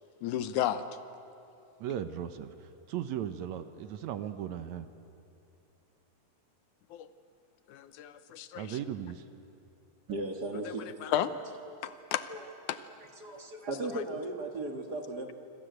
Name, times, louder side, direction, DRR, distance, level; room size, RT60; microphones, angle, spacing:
voice 1, 0.2-0.9 6.9-7.1 7.7-8.8 11.0-11.3 11.8-12.3 12.7-12.8, left 11 dB, 80° left, 12 dB, 2.3 m, -32 dB
voice 2, 1.8-4.9 8.5-9.2, right 10 dB, 70° right, 10 dB, 2.1 m, -37 dB
voice 3, 10.1-11.0 11.7-11.9 12.3-12.5 13.2-15.3, right 2 dB, 40° right, 4 dB, 1.7 m, -37 dB
26.5 x 26.0 x 8.0 m, 2.7 s
omnidirectional pair, 3.5 m